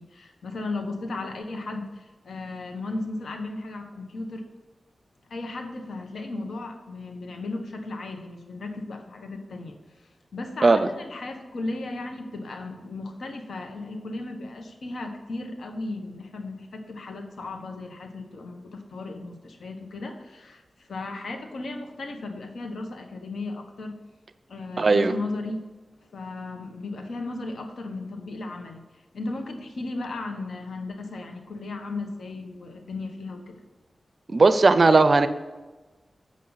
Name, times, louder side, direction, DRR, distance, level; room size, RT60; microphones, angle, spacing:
voice 1, 0.0-4.4 5.3-24.0 24.5-25.6 26.1-28.8 29.1-33.5, left 2 dB, 85° left, 4 dB, 1.3 m, -35 dB
voice 2, 24.8-25.1 34.3-35.3, right 3 dB, 55° right, 11 dB, 0.6 m, -17 dB
8.2 x 7.5 x 4.1 m, 1.2 s
cardioid pair, 60°, 0 cm